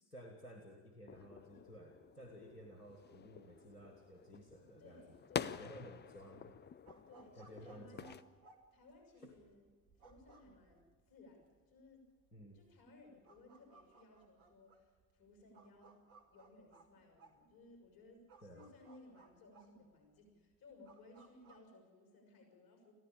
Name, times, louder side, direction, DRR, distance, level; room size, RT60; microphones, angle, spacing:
voice 1, 0.1-6.6 7.4-8.2 9.2-9.3 12.3-12.7 18.4-18.7, equal, 90° left, 4 dB, 1.5 m, -55 dB
sound 1, 1.1-8.2, left 7 dB, 25° left, 0.6 m, -48 dB
voice 2, 4.8-5.6 7.1-8.2 8.7-9.7 10.0-12.1 12.5-16.0 16.3-18.3 18.5-22.9, left 2 dB, 50° left, 4 dB, 6.5 m, -61 dB
sound 2, 5.9-21.6, right 4 dB, 70° right, 2.3 m, -65 dB
22.5 x 14.5 x 8.8 m, 1.5 s
figure-of-eight pair, 50°, 45 cm